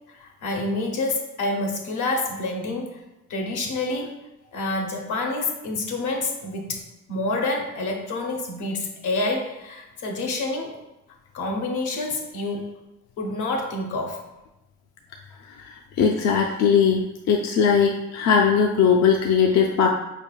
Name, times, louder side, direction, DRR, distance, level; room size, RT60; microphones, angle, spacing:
voice 1, 0.2-3.0 3.3-4.1 4.5-6.8 7.1-10.7 11.3-12.7 13.2-14.2, left 2 dB, 80° left, 1 dB, 0.8 m, -27 dB
voice 2, 15.6-19.9, left 6 dB, 60° left, 1 dB, 0.5 m, -20 dB
4.6 x 3.4 x 2.3 m, 0.98 s
cardioid pair, 90°, 30 cm